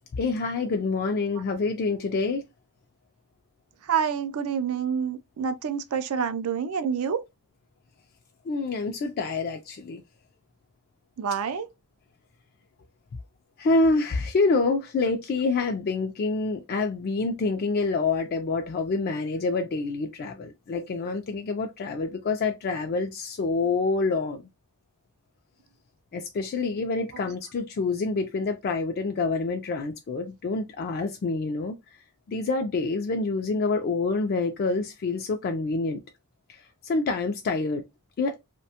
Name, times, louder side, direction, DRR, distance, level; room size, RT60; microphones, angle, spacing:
voice 1, 0.1-2.4 8.5-10.0 13.6-24.4 26.1-31.8 32.3-36.0 36.5-37.8 38.2-38.4, left 3 dB, 45° left, 0.3 m, -27 dB
voice 2, 3.8-7.2 11.2-11.7, right 7 dB, 70° right, 0.4 m, -27 dB
2.7 x 2.1 x 2.7 m
head